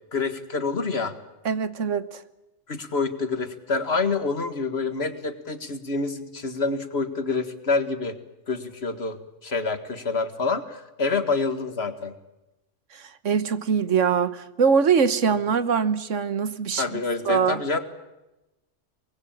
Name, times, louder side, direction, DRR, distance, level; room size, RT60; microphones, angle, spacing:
voice 1, 0.1-1.1 2.7-8.2 8.5-12.1 16.8-17.8, left 4 dB, 60° left, 10 dB, 2.0 m, -27 dB
voice 2, 1.4-2.2 12.9-17.6, right 6 dB, 90° right, 14 dB, 1.6 m, -23 dB
24.5 x 21.0 x 8.8 m, 0.97 s
omnidirectional pair, 1.2 m